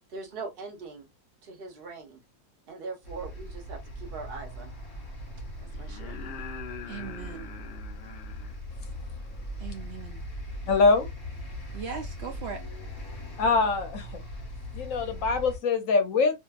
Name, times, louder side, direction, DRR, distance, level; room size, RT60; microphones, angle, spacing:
voice 1, 0.1-1.1 1.4-2.2 2.7-4.7 5.8-6.2, right 4 dB, 40° right, 1.0 m, -41 dB
sound 1, 3.0-15.6, equal, 40° left, 1.0 m, -40 dB
sound 2, 3.8-3.9 5.7-8.6 10.6-10.7, left 6 dB, 80° left, 0.5 m, -43 dB
voice 2, 6.9-7.5 9.6-10.2 11.7-12.6, right 6 dB, 80° right, 0.5 m, -38 dB
voice 3, 10.7-11.1 13.4-14.2 14.7-16.3, left 4 dB, 65° left, 0.9 m, -23 dB
2.7 x 2.5 x 2.3 m
omnidirectional pair, 1.7 m